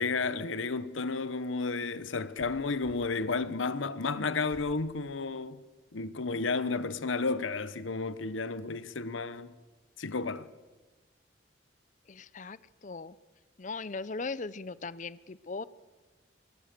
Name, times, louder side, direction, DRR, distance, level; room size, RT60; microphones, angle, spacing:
voice 1, 0.0-5.6 5.9-9.5 10.0-10.5, left 4 dB, 85° left, 1.0 m, -32 dB
sound 1, 2.3-3.1 4.5-4.8 5.4-6.0, right 1 dB, 10° right, 6.6 m, -55 dB
voice 2, 12.1-13.2 13.6-15.6, left 3 dB, 40° left, 0.6 m, -39 dB
24.0 x 20.5 x 6.8 m
head